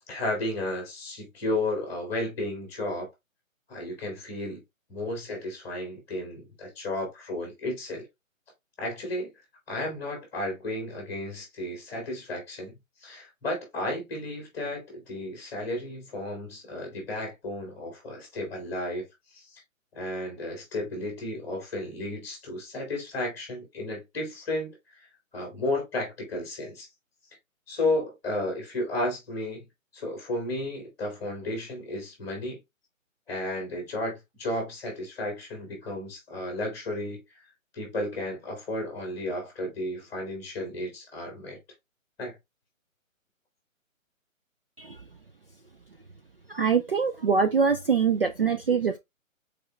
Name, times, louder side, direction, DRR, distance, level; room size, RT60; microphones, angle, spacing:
voice 1, 0.1-3.1 3.7-4.6 4.9-8.1 8.8-9.3 9.7-19.1 19.9-24.8 25.3-26.9 27.7-29.6 29.9-32.6 33.3-37.2 37.7-41.6 42.2-42.3, left 1 dB, 5° left, 1.8 m, -33 dB
voice 2, 46.5-49.0, right 6 dB, 45° right, 0.4 m, -24 dB
4.9 x 4.4 x 2.4 m
hypercardioid pair, 175°, 41 cm